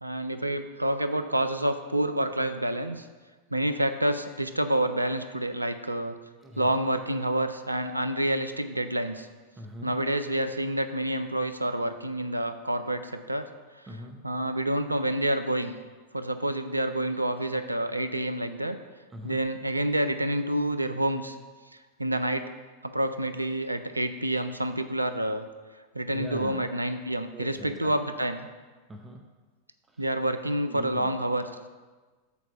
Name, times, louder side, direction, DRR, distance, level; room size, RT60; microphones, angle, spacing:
voice 1, 0.0-3.0 3.5-6.1 6.6-9.3 9.8-13.5 14.2-15.7 16.1-18.8 19.2-21.4 22.0-22.5 22.8-25.5 25.9-28.5 30.0-31.7, right 1 dB, 85° right, 10 dB, 0.4 m, -28 dB
voice 2, 6.4-6.7 9.6-9.9 13.9-14.3 19.1-19.4 26.1-26.6 27.3-27.9 28.9-29.2 29.9-30.1 30.7-31.1, equal, 15° right, 2 dB, 0.7 m, -41 dB
7.0 x 4.4 x 6.0 m, 1.3 s
figure-of-eight pair, 90°, 0 cm